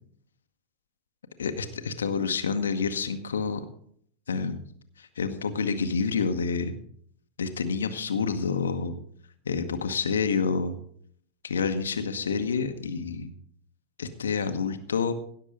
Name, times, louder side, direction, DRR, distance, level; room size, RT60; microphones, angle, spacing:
voice 1, 1.4-3.6 4.3-4.6 5.0-6.7 7.4-8.9 9.5-10.8 11.4-13.3 14.0-15.1, left 5 dB, 70° left, 8 dB, 1.0 m, -28 dB
16.5 x 6.7 x 5.2 m, 0.62 s
figure-of-eight pair, 90°, 0 cm